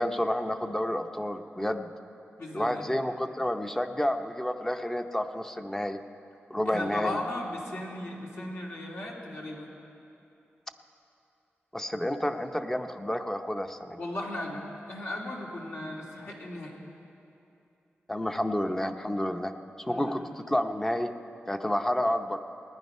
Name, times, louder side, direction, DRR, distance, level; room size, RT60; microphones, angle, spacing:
voice 1, 0.0-1.9 2.5-6.0 6.5-7.2 11.7-14.0 18.1-19.5 19.8-21.1 21.5-22.4, left 1 dB, 10° left, 7 dB, 0.7 m, -30 dB
voice 2, 2.4-2.9 6.7-9.7 14.0-14.6 14.9-16.8 19.9-20.2, left 1 dB, 70° left, -3 dB, 2.5 m, -36 dB
18.5 x 10.0 x 5.5 m, 2.8 s
wide cardioid pair, 85°, 4 cm